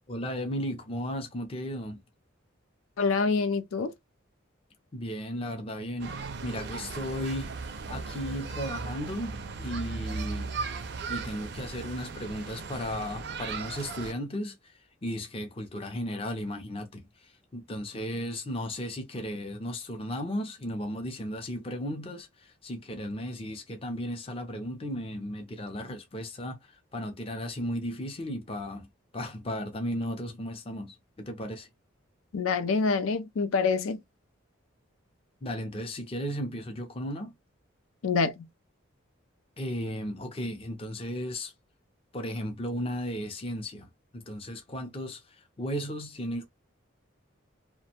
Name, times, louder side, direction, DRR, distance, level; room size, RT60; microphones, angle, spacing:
voice 1, 0.1-2.0 4.9-7.5 7.9-10.5 11.1-28.9 29.1-31.7 35.4-37.3 39.6-41.5 42.1-46.5, equal, 25° left, 0.5 m, -35 dB
voice 2, 3.0-3.9 32.3-34.0 38.0-38.3, left 4 dB, 85° left, 0.4 m, -26 dB
sound 1, 6.0-14.1, right 4 dB, 55° right, 0.4 m, -37 dB
2.5 x 2.1 x 2.8 m
head